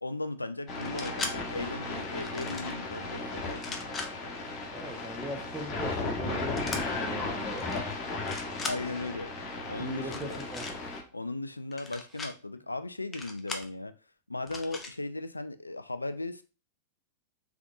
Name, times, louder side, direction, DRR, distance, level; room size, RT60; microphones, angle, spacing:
voice 1, 0.0-3.8 8.7-9.3 9.7-10.4 11.1-13.9 14.3-16.4, left 2 dB, 80° left, 0.3 m, -37 dB
sound 1, 0.7-11.0, left 3 dB, 35° left, 1.0 m, -35 dB
sound 2, 0.8-1.3 2.2-2.7 3.5-4.1 6.6-6.8 7.6-7.8 8.1-8.8 10.0-10.7 11.7-12.3 13.1-13.7 14.5-14.9, left 3 dB, 15° left, 0.6 m, -38 dB
voice 2, 4.7-7.7 9.8-10.7, right 2 dB, 15° right, 0.9 m, -39 dB
3.6 x 3.4 x 2.5 m
figure-of-eight pair, 95°, 0 cm